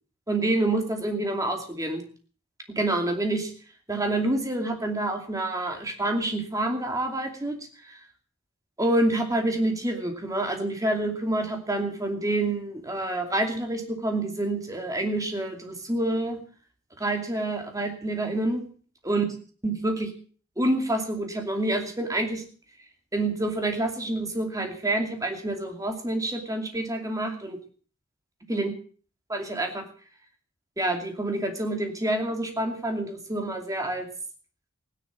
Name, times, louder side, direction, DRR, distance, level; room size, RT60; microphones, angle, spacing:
voice 1, 0.3-2.0 2.8-3.5 3.9-7.6 7.8-8.0 8.8-16.4 17.0-18.6 19.1-19.2 19.6-20.1 20.6-22.4 23.1-27.6 28.5-28.7 29.3-29.8 30.8-34.1, right 1 dB, 15° right, 4 dB, 2.6 m, -27 dB
16.0 x 10.5 x 7.4 m, 0.43 s
head